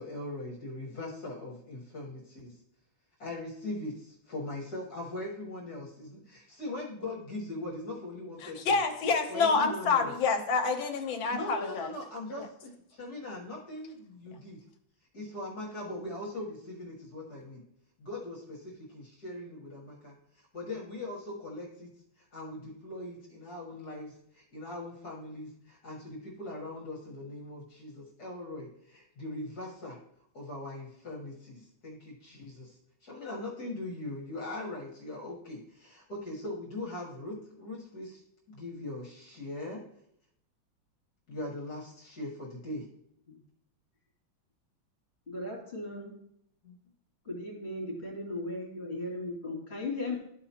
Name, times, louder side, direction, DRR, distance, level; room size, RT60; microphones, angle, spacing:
voice 1, 0.0-2.6 3.2-8.7 9.3-10.1 11.3-14.6 15.1-17.6 18.0-20.2 20.5-30.0 30.3-32.8 33.0-38.2 38.5-39.8 41.3-42.9 46.6-46.8, left 2 dB, 55° left, -3 dB, 1.9 m, -40 dB
voice 2, 8.4-11.9, left 4 dB, 75° left, 4 dB, 1.7 m, -28 dB
voice 3, 45.3-46.2 47.2-50.2, left 2 dB, 30° left, -4 dB, 2.7 m, -37 dB
13.0 x 4.8 x 2.9 m, 0.73 s
omnidirectional pair, 2.2 m